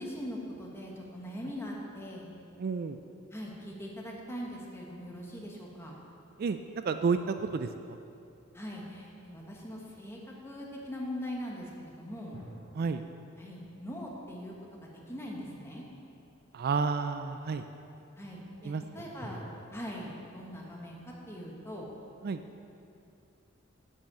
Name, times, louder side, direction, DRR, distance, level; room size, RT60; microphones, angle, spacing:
voice 1, 0.0-2.3 3.3-6.0 8.5-10.2 10.4-12.4 13.4-14.5 15.1-15.8 18.2-19.4 19.7-21.0 21.3-21.9, equal, 15° left, -2 dB, 1.4 m, -41 dB
voice 2, 2.6-3.0 6.4-6.6 6.8-8.0 12.7-13.0 16.5-17.6 18.6-18.8 22.2-22.4, right 5 dB, 50° right, 9 dB, 0.3 m, -30 dB
sound 1, 7.4-9.3 12.3-15.6 19.2-19.7, equal, 30° left, 2.5 m, -52 dB
10.5 x 5.6 x 7.2 m, 2.6 s
head